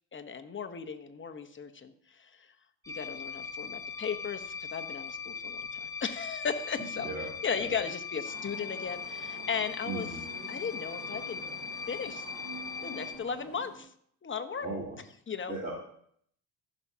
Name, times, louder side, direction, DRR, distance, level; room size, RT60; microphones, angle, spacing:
voice 1, 0.1-2.5 2.9-10.1 10.5-11.4 11.9-12.2 12.8-13.9 14.2-14.7 15.3-15.5, left 6 dB, 30° left, 7 dB, 1.1 m, -36 dB
sound 1, 2.8-13.2, left 6 dB, 10° left, 1.1 m, -40 dB
sound 2, 8.2-13.8, right 3 dB, 55° right, 4.5 m, -48 dB
voice 2, 9.9-10.2 14.6-15.0 15.5-15.7, right 3 dB, 20° right, -7 dB, 3.3 m, -36 dB
15.0 x 6.2 x 2.9 m, 0.65 s
hypercardioid pair, 60°, 42 cm